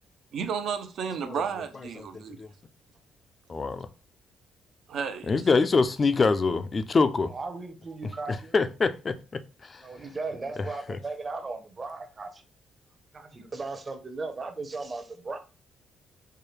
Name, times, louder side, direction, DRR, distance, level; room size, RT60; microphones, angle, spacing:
voice 1, 0.3-2.4 4.9-5.3, right 6 dB, 70° right, 0.6 m, -32 dB
voice 2, 2.0-2.5 3.5-3.9 5.3-7.3 8.5-9.2 9.6-9.8 10.9-11.0, left 4 dB, 35° left, 0.4 m, -25 dB
voice 3, 7.3-8.5 9.8-12.4 13.1-15.4, right 3 dB, 35° right, 0.8 m, -36 dB
4.6 x 2.2 x 3.2 m
cardioid pair, 90°, 0 cm